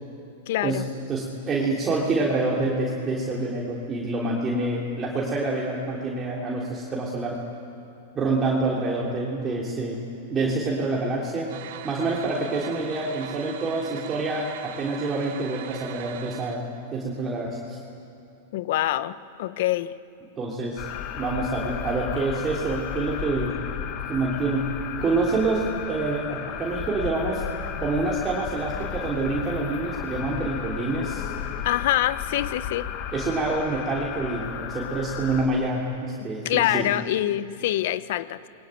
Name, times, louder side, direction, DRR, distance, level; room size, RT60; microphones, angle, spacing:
voice 1, 0.5-0.9 18.5-19.9 31.6-32.9 36.4-38.4, left 13 dB, 65° left, 15 dB, 0.9 m, -25 dB
voice 2, 1.1-7.4 8.1-10.0 10.3-11.5 11.8-16.6 16.9-17.8 20.4-20.8 21.1-23.6 24.1-24.7 25.0-27.4 27.8-31.3 33.1-36.9, right 3 dB, 20° right, -4 dB, 3.4 m, -27 dB
sound 1, 11.5-16.6, right 11 dB, 65° right, 1.6 m, -41 dB
sound 2, 20.8-35.5, left 9 dB, 45° left, 1.6 m, -34 dB
28.0 x 22.5 x 9.1 m, 2.7 s
hypercardioid pair, 135°, 0 cm